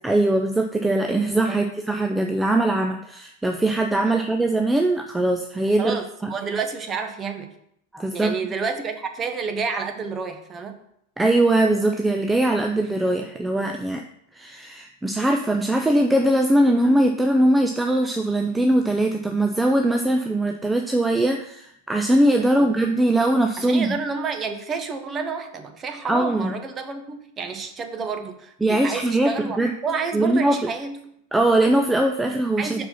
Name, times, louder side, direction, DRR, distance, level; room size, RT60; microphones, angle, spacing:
voice 1, 0.0-6.0 6.2-6.3 7.9-8.4 11.2-14.0 14.3-23.9 26.1-26.5 28.6-29.7 30.1-30.6 31.3-32.8, right 1 dB, 5° right, 3 dB, 0.5 m, -21 dB
voice 2, 5.8-7.5 8.1-10.7 22.6-22.9 23.6-29.6 29.8-31.0 32.6-32.8, right 5 dB, 25° right, 6 dB, 1.0 m, -29 dB
5.7 x 4.6 x 5.6 m, 0.72 s
figure-of-eight pair, 90°, 0 cm